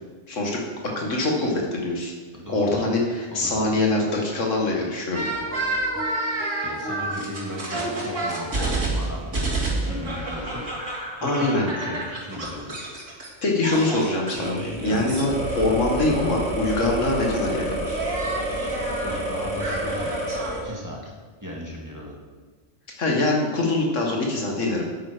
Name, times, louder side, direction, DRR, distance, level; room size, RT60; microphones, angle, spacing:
voice 1, 0.3-0.6 1.0-2.1 2.5-5.2 11.2-11.7 13.4-17.8 23.0-24.8, left 2 dB, 90° left, -1 dB, 2.1 m, -24 dB
voice 2, 2.3-2.8 3.3-3.7 6.6-12.8 14.8-15.0 19.0-20.2 20.6-22.2, left 1 dB, 15° right, -3 dB, 1.9 m, -36 dB
sound 1, 5.1-13.3 13.6-20.6, right 1 dB, 80° right, 2.8 m, -28 dB
9.3 x 8.8 x 5.1 m, 1.4 s
omnidirectional pair, 1.2 m